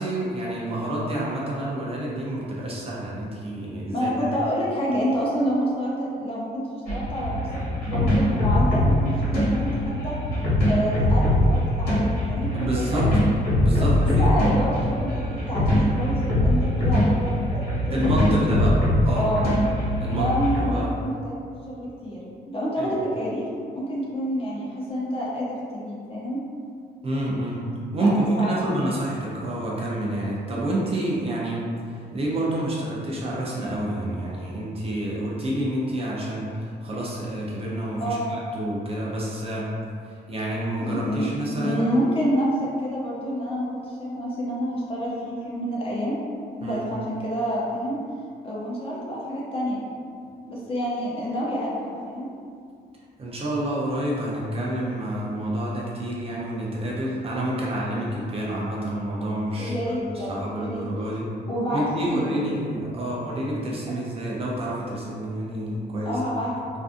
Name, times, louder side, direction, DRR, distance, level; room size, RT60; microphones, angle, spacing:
voice 1, 0.0-4.3 12.5-13.1 13.6-15.0 17.9-18.8 19.0-19.3 20.0-20.9 22.8-22.9 27.0-27.7 27.9-39.7 40.1-41.9 46.6-46.9 53.2-61.3 61.7-66.2, right 1 dB, 35° right, -5 dB, 0.4 m, -28 dB
voice 2, 3.9-10.1 10.7-13.1 13.8-18.0 18.3-18.6 19.2-19.5 20.1-21.4 21.7-23.5 23.7-26.4 28.0-28.9 38.0-38.4 40.8-41.3 41.6-46.2 46.6-48.0 48.4-49.8 50.5-52.3 59.5-60.8 61.5-62.5 66.0-66.8, equal, 30° left, -6 dB, 0.5 m, -28 dB
sound 1, 6.9-20.6, left 1 dB, 60° left, 1.1 m, -22 dB
2.5 x 2.4 x 2.4 m, 2.3 s
wide cardioid pair, 150°, 18 cm